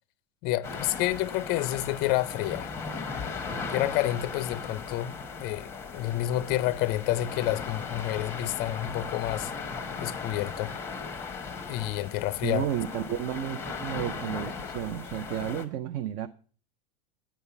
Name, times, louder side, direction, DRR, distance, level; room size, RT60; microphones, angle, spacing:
voice 1, 0.4-2.7 3.7-5.1 5.4-9.5 10.0-10.8 11.7-12.7, left 15 dB, 35° left, 0.5 m, -29 dB
sound 1, 0.6-15.6, left 5 dB, 10° left, 0.9 m, -37 dB
voice 2, 12.4-16.3, right 10 dB, 30° right, 0.4 m, -32 dB
8.9 x 5.6 x 8.0 m
supercardioid pair, 155°, 29 cm